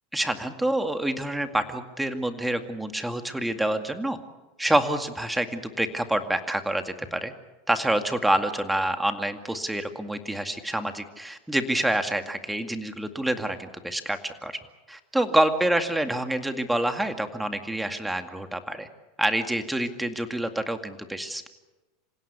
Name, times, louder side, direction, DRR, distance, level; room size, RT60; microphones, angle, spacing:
voice 1, 0.1-4.2 4.6-7.3 7.7-14.6 14.9-18.9 19.2-21.5, right 1 dB, 5° right, 7 dB, 2.1 m, -27 dB
27.0 x 16.5 x 8.4 m, 1.1 s
hypercardioid pair, 110°, 0 cm